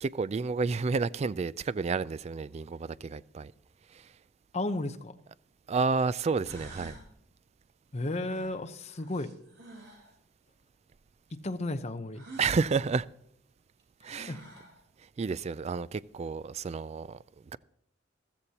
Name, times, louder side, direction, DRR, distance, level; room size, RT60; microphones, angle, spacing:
voice 1, 0.0-3.5 3.9-4.1 5.7-7.0 12.4-13.1 14.0-14.3 15.2-17.2, right 4 dB, 35° right, 0.3 m, -30 dB
voice 2, 4.5-5.1 7.9-9.3 11.3-12.3 14.0-14.4, left 2 dB, 35° left, 0.8 m, -34 dB
sound 1, 6.0-6.1 6.4-7.1 8.1-10.1 12.1-12.6 13.8-13.9 14.2-14.8, right 1 dB, 65° right, 3.7 m, -48 dB
14.5 x 14.0 x 2.9 m
head